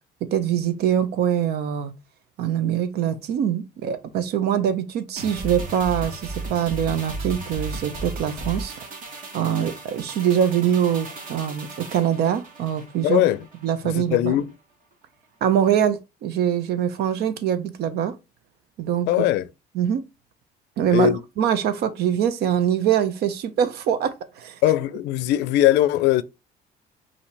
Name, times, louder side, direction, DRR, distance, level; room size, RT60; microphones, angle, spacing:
voice 1, 0.3-1.9 2.4-8.7 9.3-13.2 13.6-14.4 15.4-18.2 18.8-19.1 19.7-20.0 20.8-21.1 21.4-24.6, right 9 dB, 70° right, 0.8 m, -23 dB
sound 1, 5.2-13.7 14.0-14.2, right 3 dB, 50° right, 1.8 m, -35 dB
voice 2, 13.0-13.4 13.8-14.5 19.1-19.5 20.9-21.2 24.6-26.2, left 14 dB, 85° left, 0.5 m, -20 dB
5.4 x 2.8 x 3.3 m
cardioid pair, 110°, 17 cm